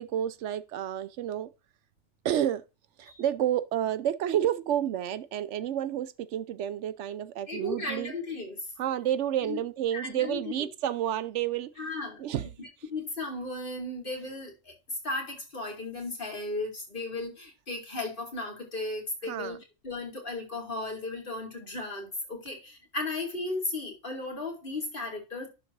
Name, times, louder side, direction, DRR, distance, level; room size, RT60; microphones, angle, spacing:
voice 1, 0.0-1.5 2.2-2.6 3.0-8.1 8.8-11.7 12.2-12.5 19.3-19.6, right 11 dB, 80° right, 0.9 m, -30 dB
voice 2, 7.5-8.6 9.4-9.6 9.9-10.6 11.8-12.2 12.6-19.6 19.8-25.5, left 2 dB, 45° left, 2.6 m, -35 dB
11.0 x 3.8 x 4.6 m
omnidirectional pair, 1.2 m